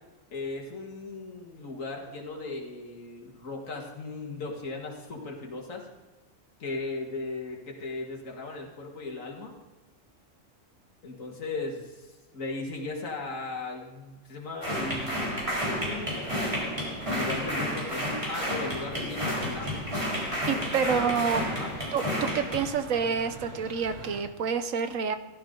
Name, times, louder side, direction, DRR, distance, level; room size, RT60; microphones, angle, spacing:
voice 1, 0.3-5.8 6.6-9.5 11.0-16.3 17.1-19.8 20.5-21.7, left 3 dB, 80° left, 0 dB, 2.2 m, -37 dB
sound 1, 14.6-22.7, equal, 25° right, 3.8 m, -31 dB
sound 2, 19.2-24.2, right 2 dB, 50° right, 2.1 m, -44 dB
voice 2, 20.5-21.5 21.9-25.2, right 6 dB, 85° right, 10 dB, 1.4 m, -28 dB
16.5 x 12.0 x 3.9 m, 1.2 s
omnidirectional pair, 1.4 m